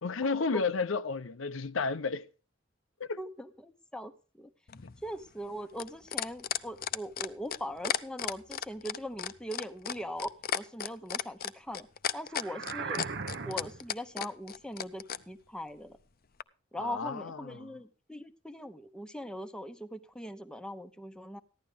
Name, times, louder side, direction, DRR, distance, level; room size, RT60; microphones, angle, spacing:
voice 1, 0.0-2.3 3.0-3.2 16.8-17.7, left 4 dB, 85° left, 0.7 m, -32 dB
voice 2, 3.2-4.1 4.4-4.5 5.0-11.9 12.1-13.0 13.4-16.0 16.7-21.4, equal, 5° left, 1.0 m, -40 dB
sound 1, 4.7-15.2 16.4-16.5, left 8 dB, 50° left, 0.6 m, -34 dB
sound 2, 12.3-13.9, right 4 dB, 60° right, 0.9 m, -38 dB
15.5 x 11.5 x 3.5 m
head